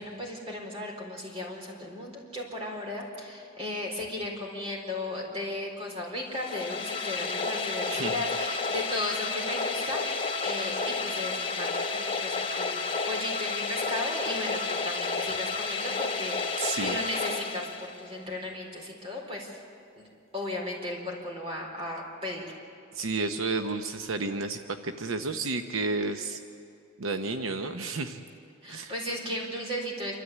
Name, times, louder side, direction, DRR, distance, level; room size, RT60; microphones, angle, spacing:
voice 1, 0.0-19.6 20.0-20.1 20.3-22.5 28.6-30.1, left 1 dB, 30° right, -1 dB, 4.4 m, -36 dB
sound 1, 6.3-18.2, left 4 dB, 25° left, 1.3 m, -31 dB
voice 2, 7.9-8.2 15.5-15.6 16.6-17.0 22.9-26.4 27.0-28.2 28.7-28.9, right 3 dB, 90° right, 7 dB, 0.8 m, -31 dB
27.5 x 13.0 x 8.6 m, 2.5 s
head